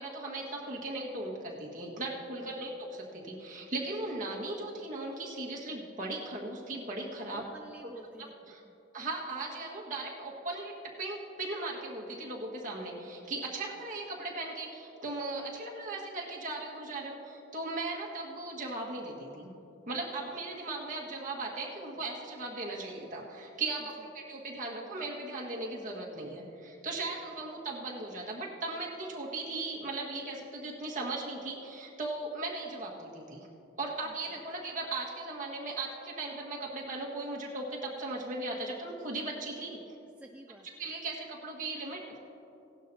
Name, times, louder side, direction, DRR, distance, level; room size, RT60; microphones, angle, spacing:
voice 1, 0.0-7.4 7.8-7.9 8.5-8.6 8.9-19.5 19.9-33.5 33.8-39.8 40.8-42.0, right 2 dB, 40° right, -3 dB, 1.7 m, -38 dB
voice 2, 7.3-8.3 8.6-8.7 34.1-34.2 40.2-40.7, right 1 dB, 5° right, 2 dB, 0.3 m, -50 dB
17.0 x 11.5 x 2.8 m, 2.9 s
head